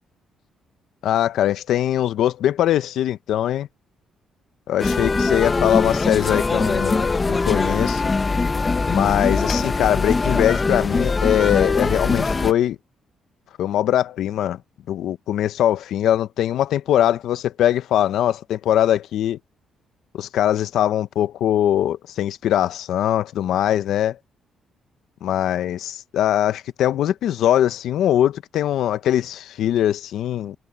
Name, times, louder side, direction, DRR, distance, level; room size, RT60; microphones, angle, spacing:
voice 1, 1.0-3.7 4.7-8.0 8.9-12.8 13.6-14.6 14.9-19.4 20.1-24.2 25.2-30.5, left 11 dB, 80° left, 1.0 m, -21 dB
sound 1, 4.8-12.5, left 3 dB, 30° left, 1.5 m, -21 dB
cardioid pair, 90°, 0 cm